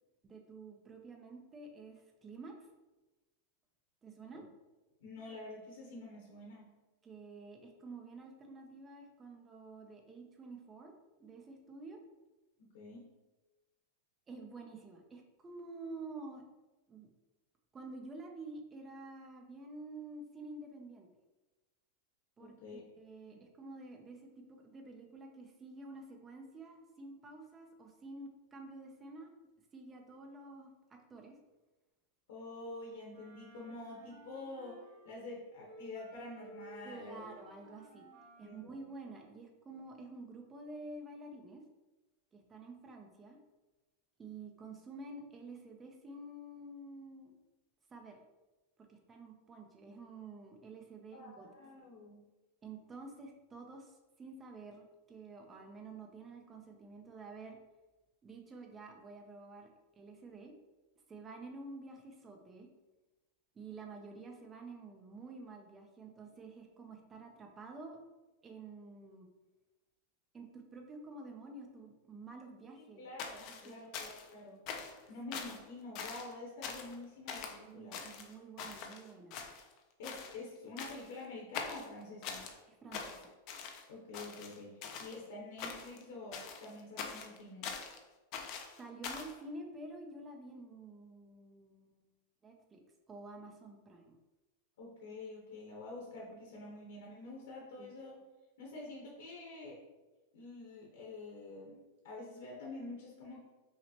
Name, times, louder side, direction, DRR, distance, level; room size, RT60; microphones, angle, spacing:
voice 1, 0.2-2.7 4.0-4.4 7.0-10.9 11.2-12.0 14.3-16.4 16.9-17.1 17.7-21.1 22.4-29.3 29.7-31.4 36.8-38.1 38.4-41.6 42.3-43.4 44.2-47.3 47.9-48.2 48.8-51.5 52.6-57.6 58.2-59.7 60.0-60.5 61.1-62.7 63.5-68.0 68.4-69.3 70.3-73.1 73.4-73.9 77.6-79.4 82.7-83.3 88.8-92.1 92.4-92.8 93.1-94.2 97.8-97.9, right 3 dB, 15° right, 2 dB, 0.5 m, -49 dB
voice 2, 5.0-6.8 12.6-13.1 22.4-22.8 23.3-23.4 32.3-37.3 38.4-38.7 51.1-52.2 72.7-74.6 75.1-78.0 80.0-82.5 83.9-87.7 94.8-98.2 98.6-99.8 100.3-101.8 102.0-103.4, left 2 dB, 75° left, -3 dB, 1.1 m, -48 dB
Wind instrument woodwind instrument, 33.1-35.3 35.6-38.7, right 1 dB, 80° right, 1.0 m, -56 dB
sound 1, 73.2-74.3 74.7-75.0 75.3-75.6 76.0-76.3 76.6-77.0 77.3-77.6 77.9-79.0 79.3-79.8 80.0-80.4 80.8-81.2 81.5-82.5 82.9-83.8 84.1-85.2 85.6-86.0 86.3-88.0 88.3-89.4, left 6 dB, 40° left, 0.5 m, -43 dB
5.6 x 2.1 x 2.9 m, 1.1 s
supercardioid pair, 155°, 0 cm